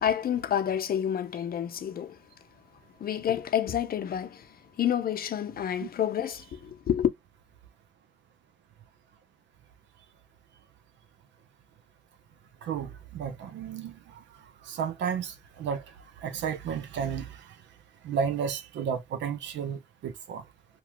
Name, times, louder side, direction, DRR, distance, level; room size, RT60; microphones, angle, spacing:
voice 1, 0.0-2.2 3.0-7.1, left 9 dB, 55° left, 0.6 m, -29 dB
voice 2, 12.6-14.2 14.6-15.8 16.2-17.5 18.0-20.4, right 7 dB, 75° right, 0.6 m, -33 dB
2.9 x 2.3 x 2.8 m
supercardioid pair, 65°, 19 cm